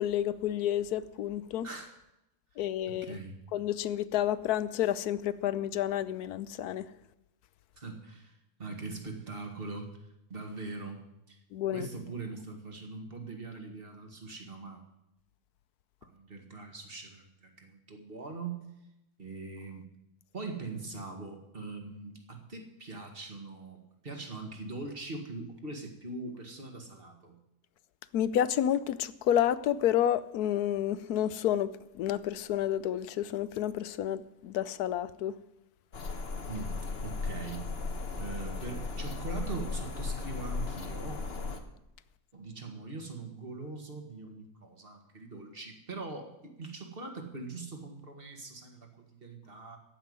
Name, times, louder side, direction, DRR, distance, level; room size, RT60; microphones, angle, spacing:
voice 1, 0.0-1.7 2.6-3.2 3.5-6.9 11.5-11.9 28.1-31.7 32.0-35.3, left 11 dB, 75° left, 1.2 m, -30 dB
voice 2, 1.6-2.0 2.5-3.4 7.8-10.0 10.3-11.4 11.7-14.8 16.0-18.6 19.2-19.9 20.3-27.4 36.5-37.7 38.2-41.2 42.3-49.8, right 3 dB, 35° right, 2.1 m, -42 dB
sound 1, 35.9-41.6, left 4 dB, 45° left, 1.3 m, -36 dB
15.0 x 5.9 x 9.5 m
omnidirectional pair, 1.7 m